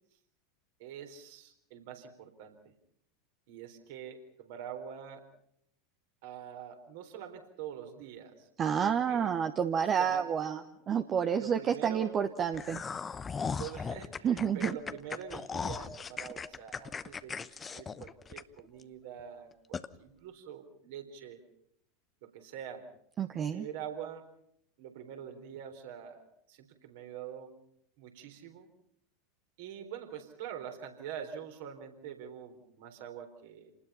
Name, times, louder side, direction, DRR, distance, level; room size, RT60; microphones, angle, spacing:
voice 1, 0.8-2.7 3.5-5.2 6.2-9.3 9.8-10.5 11.3-12.2 13.3-21.4 22.2-22.9 23.5-24.3 24.8-27.5 28.0-28.7 29.6-33.7, right 9 dB, 55° right, 5 dB, 4.0 m, -45 dB
voice 2, 8.6-12.8 14.2-14.8 23.2-23.7, right 7 dB, 30° right, 7 dB, 1.2 m, -29 dB
sound 1, 12.5-18.8 19.2-19.3 19.7-19.9, left 5 dB, 20° left, 0.9 m, -38 dB
28.5 x 20.0 x 5.7 m, 0.71 s
figure-of-eight pair, 80°, 0 cm